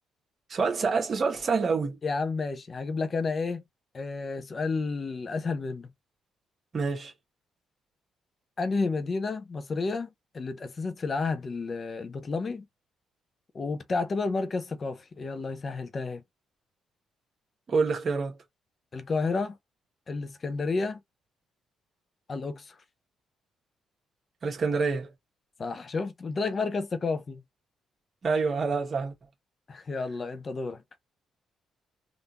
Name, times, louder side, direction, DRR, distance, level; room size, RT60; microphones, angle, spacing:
voice 1, 0.5-2.0 6.7-7.1 17.7-18.4 24.4-25.1 28.2-29.1, right 4 dB, 45° right, 1.4 m, -27 dB
voice 2, 2.0-3.6 3.9-5.9 8.6-10.1 10.3-12.7 13.5-16.2 18.9-19.6 20.1-21.0 22.3-22.8 25.6-27.4 29.7-30.8, left 4 dB, 40° left, 0.6 m, -31 dB
3.5 x 2.6 x 2.8 m
cardioid pair, 90°, 0 cm